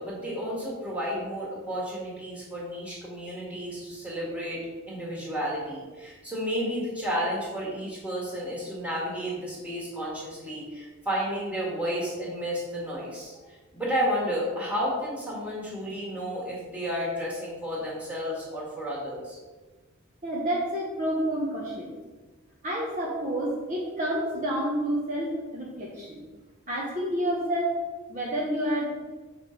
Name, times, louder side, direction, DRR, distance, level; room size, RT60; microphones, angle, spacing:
voice 1, 0.0-4.6 4.9-13.3 13.7-19.4, equal, 5° right, -6 dB, 1.8 m, -32 dB
voice 2, 20.2-21.9 22.6-26.2 26.7-27.7 28.1-28.9, right 1 dB, 35° right, -4 dB, 0.8 m, -29 dB
6.7 x 4.4 x 3.8 m, 1.3 s
head